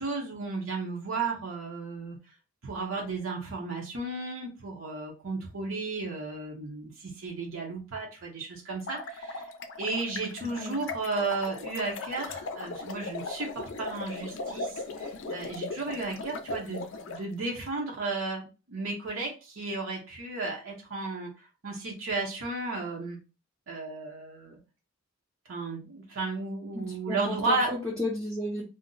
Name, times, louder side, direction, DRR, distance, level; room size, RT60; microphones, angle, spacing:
voice 1, 0.0-2.2 2.6-9.5 9.8-23.2 23.7-24.6 25.5-27.7, right 3 dB, 75° right, -1 dB, 0.7 m, -34 dB
sound 1, 8.7-17.2, left 3 dB, 65° left, 0.4 m, -38 dB
voice 2, 10.4-10.8 26.7-28.6, left 1 dB, 5° left, -5 dB, 0.5 m, -33 dB
2.5 x 2.0 x 3.7 m, 0.31 s
head